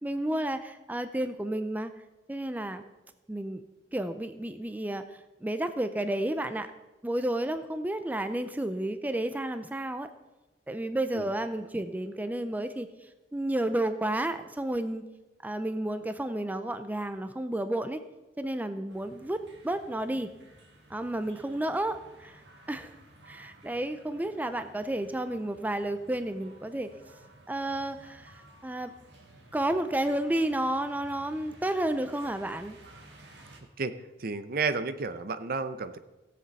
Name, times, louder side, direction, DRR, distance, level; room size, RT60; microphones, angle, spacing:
voice 1, 0.0-1.9 2.3-2.8 3.3-3.6 3.9-6.7 7.0-10.1 10.7-12.9 13.3-15.0 15.4-18.0 18.4-20.3 20.9-22.4 22.7-23.0 23.2-26.9 27.5-28.9 29.5-32.8, right 1 dB, 10° right, 10 dB, 0.4 m, -31 dB
sound 1, 18.9-33.6, right 1 dB, 70° right, 1.8 m, -55 dB
voice 2, 34.2-36.0, right 4 dB, 55° right, 11 dB, 0.7 m, -31 dB
17.0 x 7.7 x 4.1 m, 1.1 s
head